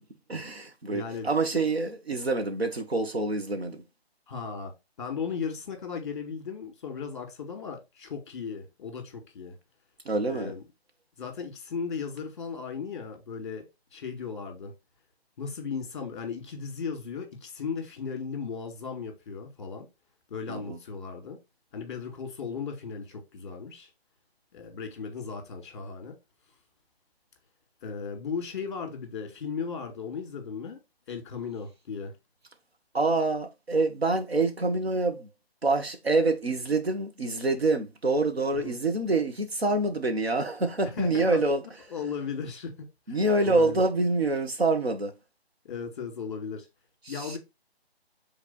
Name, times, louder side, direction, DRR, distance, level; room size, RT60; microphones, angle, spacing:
voice 1, 0.3-3.8 10.0-10.5 20.5-20.8 32.9-35.3 35.6-41.6 43.1-45.1 47.1-47.4, right 2 dB, 75° right, 1.6 m, -26 dB
voice 2, 0.9-1.3 4.3-4.7 5.0-9.6 10.3-10.6 11.2-14.7 15.4-19.9 20.3-21.4 21.7-23.9 24.5-26.1 27.8-30.8 31.1-32.1 38.5-38.8 41.0-41.4 41.9-43.8 45.6-46.7 47.1-47.4, left 6 dB, 30° left, 2.2 m, -36 dB
5.9 x 4.0 x 4.1 m
figure-of-eight pair, 155°, 32 cm